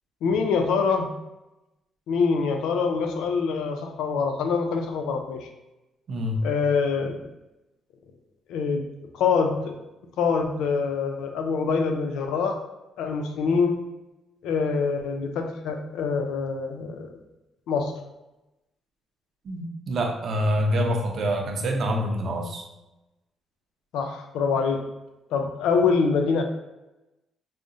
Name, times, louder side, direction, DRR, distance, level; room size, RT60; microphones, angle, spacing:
voice 1, 0.2-1.1 2.1-5.5 6.4-7.2 8.5-8.8 9.1-9.8 10.2-12.6 13.0-13.8 14.4-17.1 17.7-17.9 23.9-24.8 25.3-26.4, left 5 dB, 90° left, 4 dB, 0.4 m, -25 dB
voice 2, 6.1-6.4 19.4-22.7, equal, 55° right, 2 dB, 0.6 m, -26 dB
4.8 x 2.1 x 2.6 m, 0.99 s
cardioid pair, 90°, 0 cm